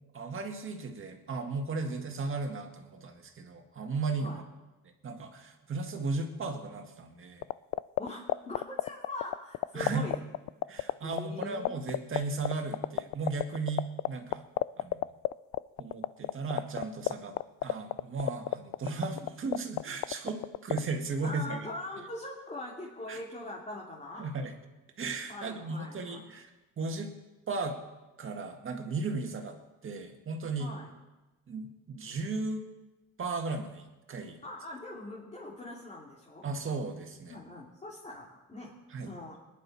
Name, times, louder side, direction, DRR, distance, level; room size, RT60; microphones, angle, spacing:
voice 1, 0.1-4.4 5.0-7.5 9.7-10.1 10.7-14.4 14.8-15.1 15.8-17.4 17.6-21.7 23.1-23.2 24.2-24.5 25.0-27.1 27.5-27.8 28.2-29.6 29.8-30.7 31.5-32.7 33.2-34.4 36.4-37.4 38.9-39.1, right 3 dB, 35° right, 4 dB, 2.0 m, -35 dB
sound 1, 7.4-20.8, left 17 dB, 55° left, 0.4 m, -27 dB
voice 2, 8.0-10.2 11.0-11.7 21.2-24.3 25.3-26.2 30.6-30.9 34.4-36.5 37.3-39.4, left 2 dB, 20° left, -4 dB, 2.7 m, -42 dB
20.5 x 10.5 x 4.3 m, 1.1 s
cardioid pair, 105°, 34 cm